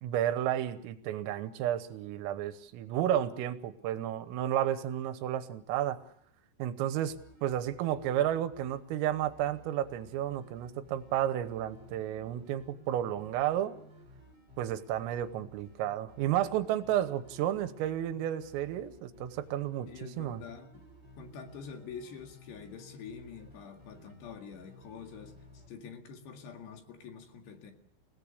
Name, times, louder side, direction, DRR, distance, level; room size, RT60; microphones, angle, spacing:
voice 1, 0.0-6.0 6.6-13.8 14.6-20.4, right 11 dB, 90° right, 11 dB, 3.8 m, -32 dB
sound 1, 7.1-25.7, left 1 dB, 20° right, 6.3 m, -56 dB
voice 2, 19.9-20.9 21.2-27.7, left 6 dB, 60° left, 4 dB, 3.8 m, -46 dB
29.5 x 17.5 x 6.7 m, 0.68 s
omnidirectional pair, 5.8 m